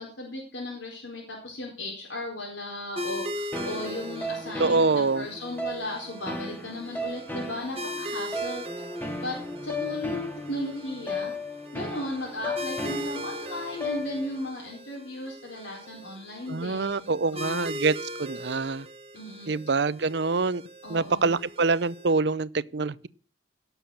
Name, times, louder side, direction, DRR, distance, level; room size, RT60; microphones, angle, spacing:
voice 1, 0.0-8.6 9.2-9.4 9.6-11.3 11.7-17.7 19.1-19.6 20.8-21.4, left 1 dB, 85° left, 4.4 m, -36 dB
sound 1, 3.0-22.1, left 1 dB, 30° right, 1.4 m, -40 dB
sound 2, 3.5-14.5, left 1 dB, 10° left, 2.0 m, -36 dB
voice 2, 4.6-5.3 16.5-17.9 18.2-18.9 19.5-20.6 20.9-23.1, right 4 dB, 65° right, 0.6 m, -25 dB
17.5 x 7.1 x 7.1 m
head